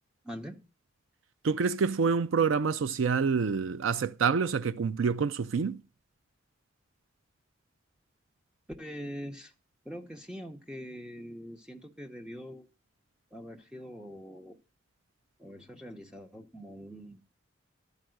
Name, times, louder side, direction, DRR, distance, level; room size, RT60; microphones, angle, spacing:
voice 1, 0.2-0.6 8.8-9.5 9.8-12.7 13.3-14.6 15.4-17.2, equal, 5° right, 1.0 m, -43 dB
voice 2, 1.4-5.8, right 5 dB, 85° right, 0.4 m, -27 dB
12.5 x 4.8 x 7.8 m
head